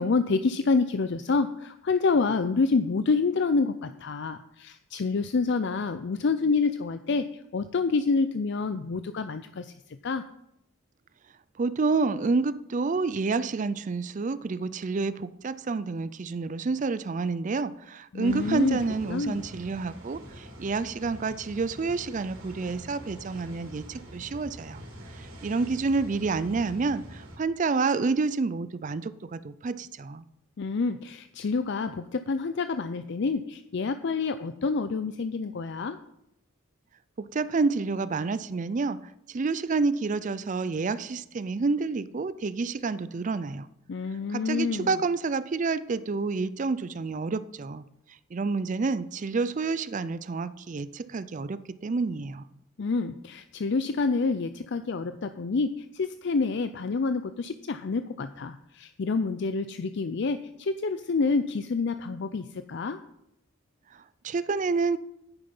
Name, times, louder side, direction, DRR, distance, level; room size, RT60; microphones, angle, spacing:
voice 1, 0.0-7.3 7.5-9.7 10.0-10.2 18.1-18.8 19.1-19.4 30.6-36.0 43.9-45.0 52.8-63.0, left 4 dB, 55° left, 11 dB, 0.5 m, -27 dB
voice 2, 11.6-24.8 25.1-30.2 37.2-39.0 39.3-43.7 44.3-47.8 48.3-52.4 63.9-65.0, right 4 dB, 35° right, 15 dB, 0.4 m, -29 dB
sound 1, 18.2-27.4, equal, 75° right, 3.0 m, -45 dB
9.8 x 9.7 x 5.5 m, 0.81 s
head